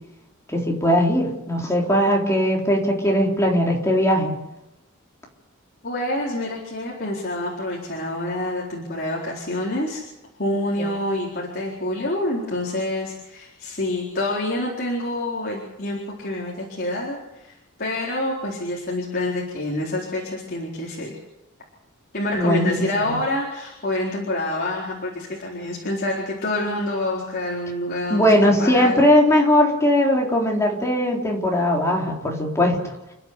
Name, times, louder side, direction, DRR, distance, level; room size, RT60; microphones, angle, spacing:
voice 1, 0.5-4.3 10.8-10.9 22.3-22.8 23.1-23.2 28.1-32.8, equal, 15° left, -1 dB, 3.8 m, -19 dB
voice 2, 5.8-10.0 10.4-21.2 22.1-28.3 28.6-29.0, left 1 dB, 50° left, -3 dB, 4.3 m, -27 dB
29.5 x 11.0 x 8.3 m, 0.92 s
head